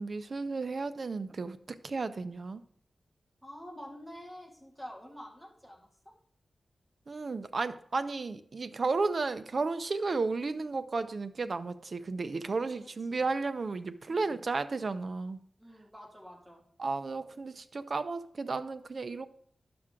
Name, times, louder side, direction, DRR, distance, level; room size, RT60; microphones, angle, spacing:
voice 1, 0.0-2.6 7.1-15.4 16.8-19.3, right 3 dB, 55° right, 11 dB, 0.5 m, -33 dB
voice 2, 3.4-6.2 12.7-13.2 14.1-14.4 15.6-16.6, equal, 5° right, -1 dB, 1.9 m, -48 dB
11.5 x 6.0 x 3.7 m, 0.64 s
wide cardioid pair, 115°, 0 cm